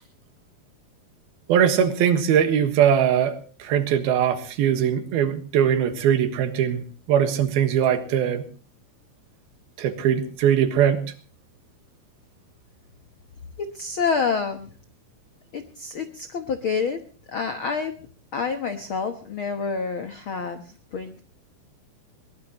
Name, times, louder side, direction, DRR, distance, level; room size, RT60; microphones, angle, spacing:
voice 1, 1.5-6.8 7.1-8.4 9.8-11.0, right 9 dB, 80° right, 9 dB, 3.4 m, -21 dB
voice 2, 13.6-14.7 15.5-17.0 17.3-17.9 18.3-21.2, left 5 dB, 80° left, 8 dB, 1.1 m, -28 dB
21.5 x 19.0 x 3.1 m, 0.36 s
omnidirectional pair, 4.3 m